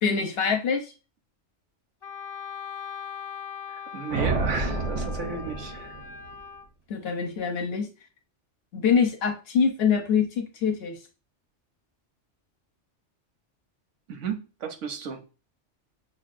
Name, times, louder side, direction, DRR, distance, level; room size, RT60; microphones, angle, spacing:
voice 1, 0.0-0.9 6.9-7.9 8.7-11.0, left 6 dB, 60° left, 5 dB, 0.8 m, -24 dB
Wind instrument woodwind instrument, 2.0-6.7, left 7 dB, 35° left, 0.4 m, -40 dB
voice 2, 3.9-6.0 14.1-15.2, right 5 dB, 80° right, 6 dB, 1.0 m, -34 dB
sound 1, 4.1-6.4, right 3 dB, 50° right, 0.5 m, -29 dB
6.0 x 2.2 x 2.4 m, 0.32 s
omnidirectional pair, 1.2 m